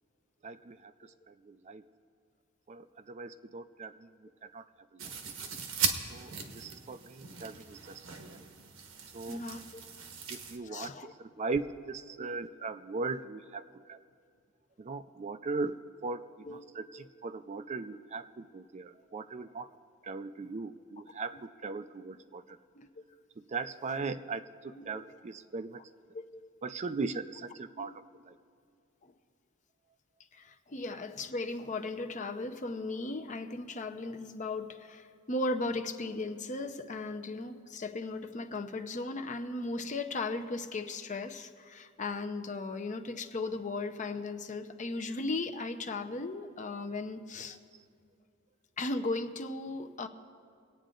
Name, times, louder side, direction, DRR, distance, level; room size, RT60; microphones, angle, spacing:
voice 1, 0.4-1.8 2.7-4.6 4.9-5.1 6.1-8.4 9.1-9.4 10.3-10.9 11.2-14.0 14.8-15.8 16.0-19.7 20.0-22.6 23.5-25.8 26.6-28.3, right 3 dB, 35° right, 11 dB, 0.4 m, -39 dB
sound 1, 5.0-10.6, right 6 dB, 85° right, 1.2 m, -38 dB
voice 2, 9.3-9.8 10.6-11.1 12.2-12.4 16.5-16.7 16.9-17.1 22.8-22.9 24.8-24.9 26.1-26.5 27.8-28.0 29.0-29.1 30.3-47.6 48.8-50.1, left 2 dB, 40° left, 7 dB, 0.7 m, -37 dB
24.0 x 9.1 x 3.8 m, 2.4 s
head